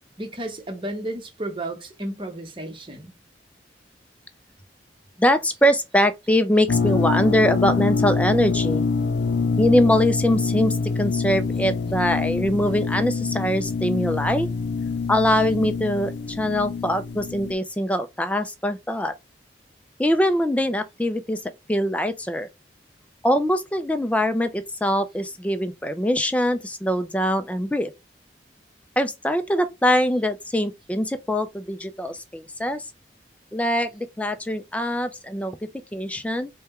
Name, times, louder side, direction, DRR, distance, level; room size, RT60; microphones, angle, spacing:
voice 1, 0.2-3.1, right 1 dB, 30° right, 0.9 m, -33 dB
voice 2, 5.2-8.8 9.6-14.5 15.1-19.1 20.0-21.4 21.7-22.5 23.2-27.9 29.0-32.9 33.5-36.5, equal, 10° left, 0.4 m, -23 dB
sound 1, 6.7-17.5, left 4 dB, 75° left, 0.5 m, -25 dB
4.3 x 2.2 x 3.5 m
head